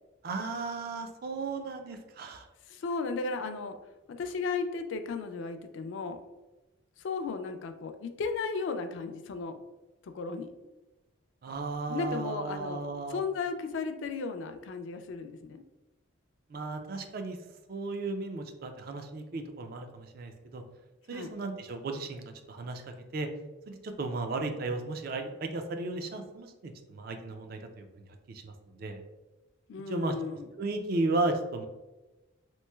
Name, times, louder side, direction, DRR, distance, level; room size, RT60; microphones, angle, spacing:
voice 1, 0.2-2.5 11.4-13.2 16.5-17.4 17.7-20.6 21.1-22.8 23.1-23.3 23.7-27.9 28.3-29.0 29.9-30.2 30.6-31.6, right 3 dB, 45° right, 6 dB, 0.3 m, -35 dB
voice 2, 2.7-3.7 4.1-6.2 7.0-9.6 10.0-10.5 11.9-12.8 13.1-15.6 21.1-21.3 29.7-30.5, left 4 dB, 65° left, 8 dB, 0.3 m, -35 dB
3.0 x 3.0 x 2.2 m, 1.1 s
head